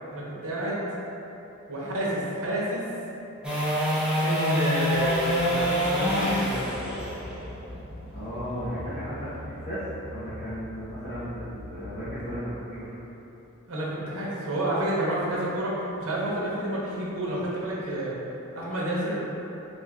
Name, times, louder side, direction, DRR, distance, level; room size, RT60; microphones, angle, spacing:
voice 1, 0.1-0.9 1.7-2.8 4.2-6.6 13.7-18.1 18.5-19.2, right 1 dB, 75° right, -6 dB, 0.9 m, -29 dB
sound 1, 3.4-9.6 16.1-16.2, equal, 5° right, 0.7 m, -27 dB
sound 2, 5.2-12.2, left 1 dB, 80° left, 0.7 m, -42 dB
voice 2, 8.1-13.0, equal, 45° left, -14 dB, 0.9 m, -35 dB
3.9 x 2.6 x 3.5 m, 2.9 s
head